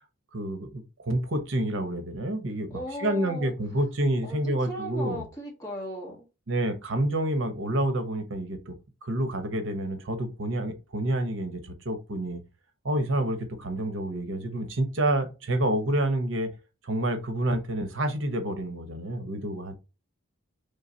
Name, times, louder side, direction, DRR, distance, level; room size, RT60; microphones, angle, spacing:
voice 1, 0.3-5.2 6.5-8.7 9.0-12.4 12.8-16.5 16.8-19.8, right 1 dB, 70° right, 0.9 m, -28 dB
voice 2, 2.7-3.5 4.2-6.2, equal, 15° left, 1.5 m, -37 dB
5.5 x 3.3 x 2.8 m
head